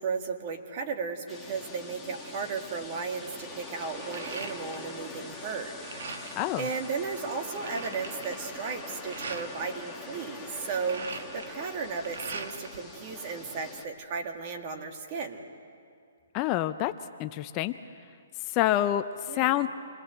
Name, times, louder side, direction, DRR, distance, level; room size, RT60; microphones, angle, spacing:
voice 1, 0.0-5.8 6.1-15.4 19.3-19.6, right 5 dB, 35° right, 4 dB, 2.0 m, -35 dB
sound 1, 1.3-13.9, left 3 dB, ahead, 1.6 m, -43 dB
sound 2, 2.6-2.8 3.3-5.0 5.3-6.5 7.0-7.1 7.3-9.5 10.5-12.8 13.1-14.0, right 4 dB, 75° right, 1.8 m, -41 dB
voice 2, 6.3-6.6 16.3-16.9 17.2-17.8 18.5-19.7, left 13 dB, 25° left, 9 dB, 0.5 m, -27 dB
27.5 x 21.5 x 7.8 m, 2.4 s
hypercardioid pair, 160°, 0 cm